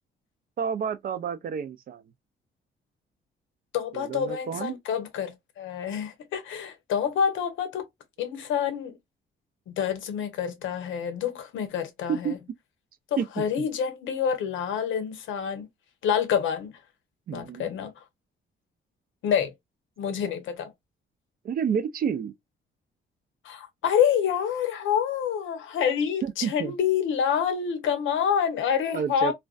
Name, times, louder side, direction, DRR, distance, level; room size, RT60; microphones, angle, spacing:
voice 1, 0.6-2.0 3.9-4.7 12.1-12.4 13.2-13.3 17.3-17.7 21.4-22.3 26.2-26.7 28.9-29.3, right 7 dB, 50° right, 0.4 m, -29 dB
voice 2, 3.7-7.9 8.2-9.0 9.7-12.4 13.4-15.7 16.0-16.7 17.3-17.9 19.2-19.5 20.0-20.7 23.4-29.3, left 8 dB, 80° left, 0.7 m, -27 dB
2.4 x 2.2 x 2.3 m
cardioid pair, 90°, 20 cm